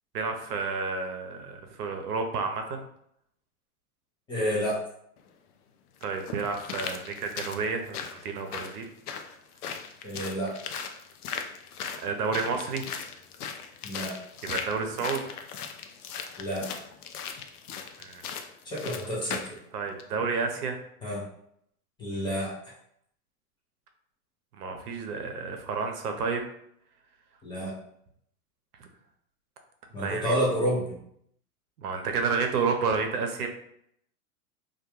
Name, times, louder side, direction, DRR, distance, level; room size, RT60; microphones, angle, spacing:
voice 1, 0.1-2.8 6.0-8.9 12.0-12.8 14.4-15.2 18.0-18.2 19.7-20.8 24.5-26.5 28.8-28.9 29.9-30.4 31.8-33.5, right 4 dB, 85° right, 4 dB, 0.7 m, -30 dB
voice 2, 4.3-4.8 10.0-10.6 13.8-14.1 16.4-16.7 18.6-19.4 21.0-21.2 22.0-22.5 27.4-27.7 29.9-30.8, equal, 10° left, -5 dB, 0.4 m, -29 dB
sound 1, 5.2-5.3 6.0-19.6 20.0-20.1, left 7 dB, 85° left, 0.5 m, -38 dB
2.3 x 2.2 x 2.9 m, 0.71 s
hypercardioid pair, 110°, 45 cm